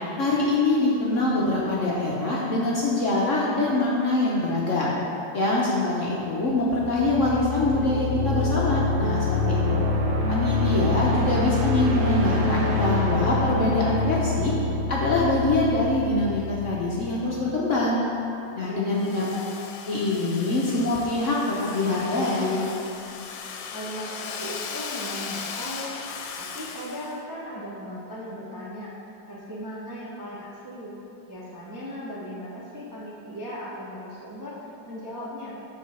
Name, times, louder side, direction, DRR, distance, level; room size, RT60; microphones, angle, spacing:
voice 1, 0.2-5.0 5.3-9.9 10.3-14.5 14.9-18.0 18.6-19.3 19.9-21.4 21.6-22.6, left 2 dB, 55° left, -5 dB, 0.9 m, -24 dB
sound 1, 6.8-17.5, left 2 dB, 70° right, 1.4 m, -26 dB
voice 2, 18.6-19.2 23.7-25.9 26.3-28.9 29.3-30.9 31.3-34.5 34.8-35.5, equal, 15° right, -7 dB, 0.6 m, -37 dB
Domestic sounds home sounds, 19.0-27.2, left 5 dB, 85° left, 1.3 m, -37 dB
7.6 x 3.9 x 5.6 m, 2.9 s
omnidirectional pair, 2.0 m